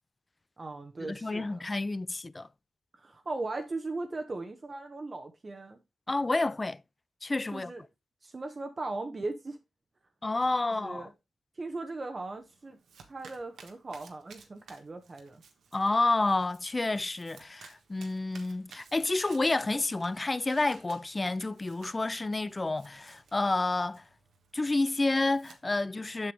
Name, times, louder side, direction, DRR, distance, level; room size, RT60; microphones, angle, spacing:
voice 1, 0.6-1.6 2.9-5.8 7.5-7.8 8.2-9.6 10.6-11.1 11.6-12.8 13.1-15.4, right 2 dB, 40° right, 1.0 m, -38 dB
voice 2, 1.1-2.5 6.1-6.8 7.2-7.7 10.2-11.1 15.7-24.0 24.5-26.3, left 2 dB, 30° left, 0.4 m, -29 dB
Domestic sounds home sounds, 12.2-25.8, right 5 dB, 85° right, 1.3 m, -56 dB
7.7 x 6.0 x 3.3 m
cardioid pair, 70°, 0 cm